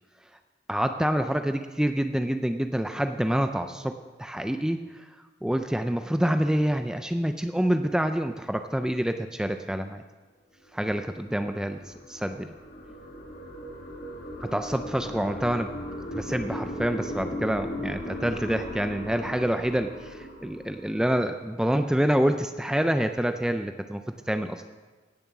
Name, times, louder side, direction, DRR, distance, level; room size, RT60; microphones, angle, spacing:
voice 1, 0.7-5.0 5.4-10.0 10.7-12.5 14.4-15.7 16.1-24.0 24.3-24.6, equal, 5° right, 7 dB, 0.4 m, -27 dB
sound 1, 11.2-21.4, equal, 50° left, 1.8 m, -38 dB
16.5 x 7.2 x 5.9 m, 1.4 s
head